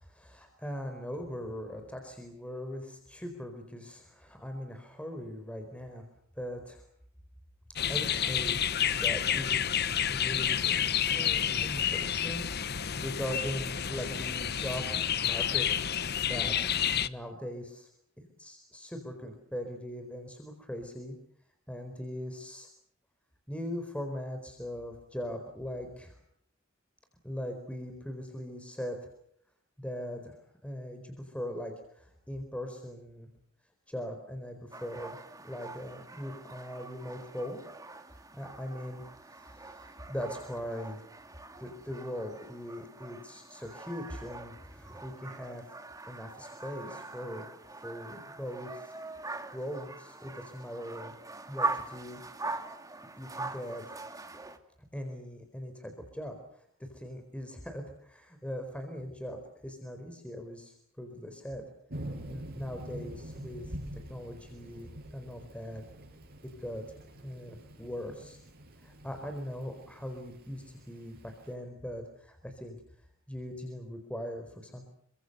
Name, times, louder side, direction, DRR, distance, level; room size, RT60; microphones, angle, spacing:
voice 1, 0.0-6.0 6.3-6.8 7.9-8.6 9.0-16.5 17.1-17.9 18.2-21.1 21.7-22.7 23.5-26.2 27.2-29.0 29.8-33.3 33.9-37.6 38.1-41.0 41.6-45.6 46.1-47.5 47.8-49.0 49.5-51.1 51.5-52.2 53.2-53.8 54.9-61.6 62.3-63.8 64.1-65.8 66.4-67.0 67.2-68.4 68.8-72.8 73.3-74.9, equal, 5° left, 5 dB, 4.4 m, -40 dB
sound 1, 7.8-17.1, left 9 dB, 55° left, 1.1 m, -29 dB
sound 2, 34.7-54.6, right 3 dB, 15° right, 2.6 m, -42 dB
Thunder / Rain, 61.9-71.5, right 1 dB, 50° right, 7.0 m, -46 dB
29.5 x 24.5 x 6.8 m, 0.67 s
head